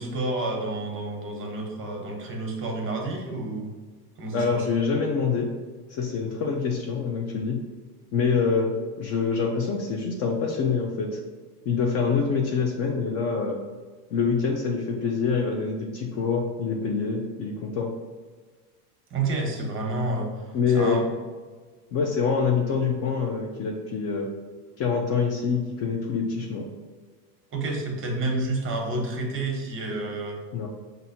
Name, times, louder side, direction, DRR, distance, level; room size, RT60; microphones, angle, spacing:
voice 1, 0.0-3.7 4.2-4.7 19.1-20.5 20.7-21.0 27.5-30.4, right 2 dB, 25° right, 1 dB, 1.0 m, -29 dB
voice 2, 4.3-5.5 5.9-7.6 8.1-11.2 11.7-13.6 14.1-17.9 20.5-21.0 21.9-24.3 24.8-26.7 30.5-30.7, left 5 dB, 35° left, 2 dB, 0.4 m, -25 dB
5.5 x 2.6 x 2.7 m, 1.4 s
supercardioid pair, 110°, 48 cm